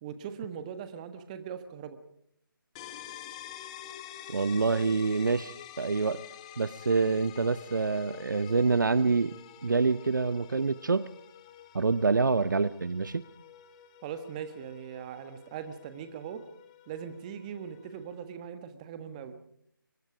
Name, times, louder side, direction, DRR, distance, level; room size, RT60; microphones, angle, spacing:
voice 1, 0.0-2.0 14.0-16.4 16.9-19.3, right 8 dB, 20° right, 10 dB, 1.5 m, -40 dB
sound 1, 2.8-18.3, left 11 dB, 15° left, 1.1 m, -49 dB
voice 2, 4.3-6.2 6.6-9.3 9.6-11.0 11.7-13.2, right 4 dB, 60° right, 16 dB, 0.8 m, -26 dB
23.5 x 22.0 x 5.0 m, 0.69 s
figure-of-eight pair, 150°, 12 cm